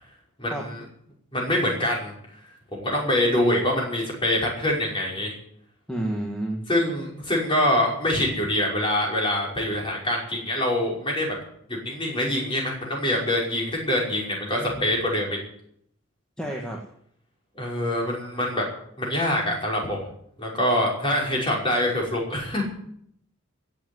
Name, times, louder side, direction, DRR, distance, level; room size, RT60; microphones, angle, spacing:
voice 1, 0.4-0.8 1.3-2.1 2.7-5.4 6.7-11.4 11.7-15.4 17.6-18.7 19.0-20.0 20.4-22.6, left 1 dB, 25° left, -3 dB, 5.7 m, -25 dB
voice 2, 5.9-6.6 14.6-14.8 16.4-16.8, right 1 dB, 5° left, -1 dB, 1.9 m, -30 dB
16.5 x 7.8 x 9.5 m, 0.69 s
head